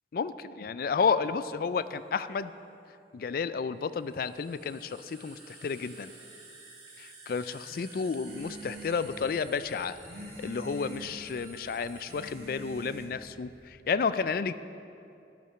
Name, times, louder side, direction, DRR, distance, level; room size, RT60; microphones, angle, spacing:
voice 1, 0.1-2.5 3.1-6.1 7.0-14.5, left 5 dB, 55° left, 14 dB, 0.3 m, -31 dB
sound 1, 1.8-1.9 3.9-12.3, right 3 dB, 35° right, 2.6 m, -52 dB
sound 2, 8.3-13.7, right 1 dB, 65° right, 1.9 m, -45 dB
10.5 x 9.2 x 5.8 m, 2.6 s
head